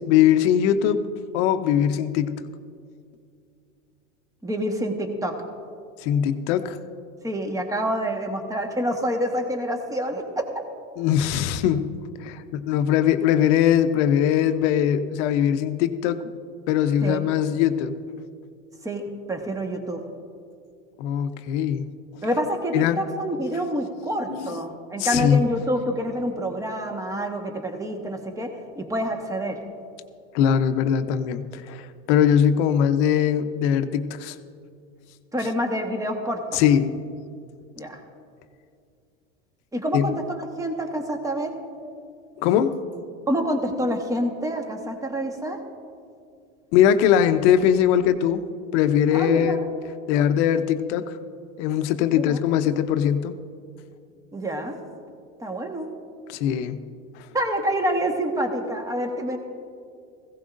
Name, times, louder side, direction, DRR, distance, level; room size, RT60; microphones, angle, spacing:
voice 1, 0.1-1.0 1.3-2.4 6.0-6.8 11.0-11.9 12.2-16.2 16.7-17.9 21.0-21.8 22.7-23.0 24.3-24.6 25.0-25.4 30.3-34.3 36.5-37.0 39.9-40.1 42.4-42.8 46.7-48.4 48.7-49.6 50.1-51.2 51.6-53.3 56.3-56.8, left 9 dB, 65° left, 9 dB, 0.9 m, -21 dB
voice 2, 4.4-5.3 7.2-10.5 17.0-17.2 18.8-20.0 22.2-29.6 35.3-36.6 37.8-38.0 39.7-41.5 43.3-45.6 49.1-49.7 52.1-52.4 54.3-54.8 55.4-55.9 57.3-59.4, equal, 10° right, 4 dB, 1.4 m, -27 dB
17.0 x 16.0 x 2.6 m, 2.4 s
supercardioid pair, 110°, 36 cm